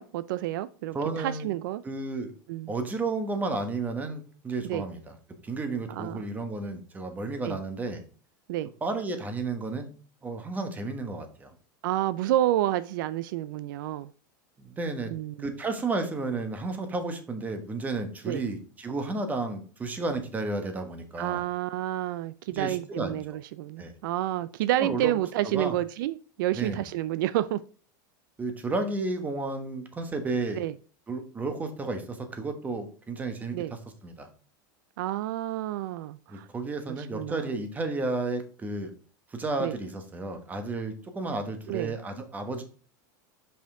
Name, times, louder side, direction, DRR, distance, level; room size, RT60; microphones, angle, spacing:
voice 1, 0.0-1.8 2.5-2.7 4.6-4.8 5.9-6.2 7.4-7.6 8.5-8.7 11.8-14.1 15.1-15.3 18.3-18.4 21.2-27.6 30.6-30.7 33.5-33.7 35.0-36.5 37.1-37.5 39.6-39.7 41.7-41.9, right 14 dB, 75° right, 0.4 m, -29 dB
voice 2, 0.9-1.5 1.8-2.3 2.7-5.2 5.4-8.0 8.8-9.9 10.2-11.5 14.6-15.1 15.4-21.4 22.5-23.4 23.8-23.9 24.8-25.1 25.4-25.7 26.5-26.8 28.4-30.6 31.1-34.3 36.3-38.9 39.3-42.6, right 3 dB, 15° right, 1.1 m, -32 dB
5.6 x 5.1 x 3.7 m
supercardioid pair, 145°, 11 cm